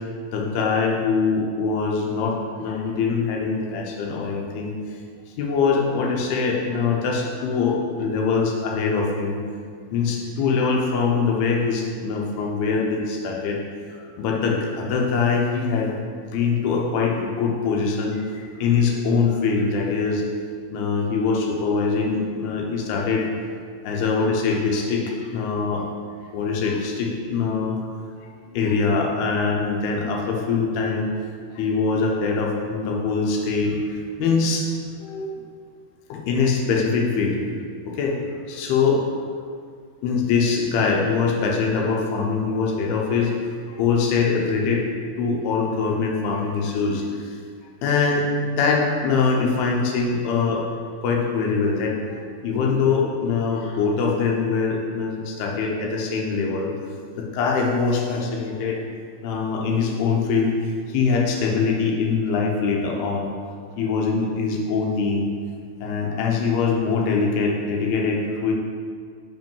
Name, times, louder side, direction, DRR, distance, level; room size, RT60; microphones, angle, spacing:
voice 1, 0.3-4.7 5.4-9.4 9.9-13.6 13.9-16.0 16.3-20.2 20.7-23.3 23.8-25.9 26.2-27.8 28.2-31.1 31.5-34.7 35.0-35.3 36.1-37.4 37.9-38.2 38.5-39.0 40.0-43.4 43.7-44.9 45.2-47.4 47.8-48.3 48.6-50.7 51.0-56.7 57.1-58.8 59.2-63.3 63.8-65.3 65.8-68.5, left 4 dB, 85° left, 0 dB, 3.0 m, -23 dB
6.5 x 5.4 x 5.4 m, 2.1 s
omnidirectional pair, 4.5 m